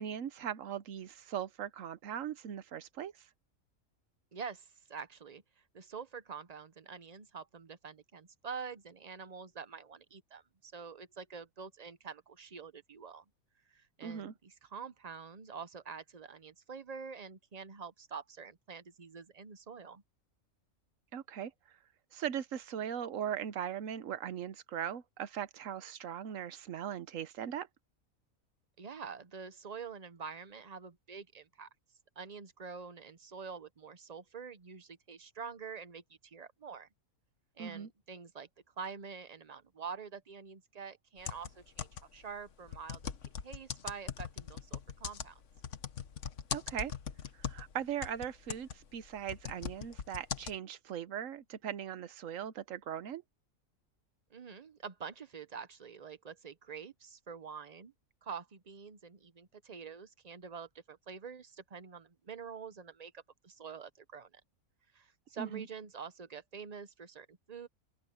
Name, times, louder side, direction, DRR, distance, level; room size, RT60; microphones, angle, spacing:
voice 1, 0.0-3.1 14.0-14.3 21.1-21.5 22.1-27.7 37.6-37.9 46.5-46.9 47.4-53.2 65.4-65.6, right 9 dB, 70° right, 1.2 m, -39 dB
voice 2, 4.3-5.4 5.7-13.2 13.7-20.0 28.8-31.7 32.2-36.9 37.6-38.5 38.8-43.1 43.4-45.4 54.3-57.9 58.2-64.4 64.9-67.7, right 6 dB, 35° right, 0.7 m, -46 dB
sound 1, 41.2-42.2 42.7-47.7 48.0-50.6, left 7 dB, 60° left, 1.4 m, -40 dB
open air
omnidirectional pair, 1.5 m